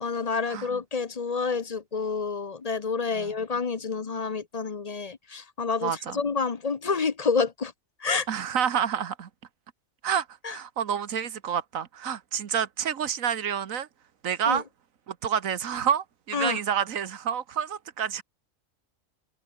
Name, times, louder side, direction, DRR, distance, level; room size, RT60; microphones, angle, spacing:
voice 1, 0.0-7.7 8.0-8.3 10.4-10.6 14.5-14.6 16.3-16.6, left 4 dB, 35° left, 0.8 m, -28 dB
voice 2, 5.8-6.2 8.3-9.3 10.0-13.9 14.2-14.6 15.1-18.2, right 8 dB, 75° right, 1.5 m, -28 dB
omnidirectional pair, 1.4 m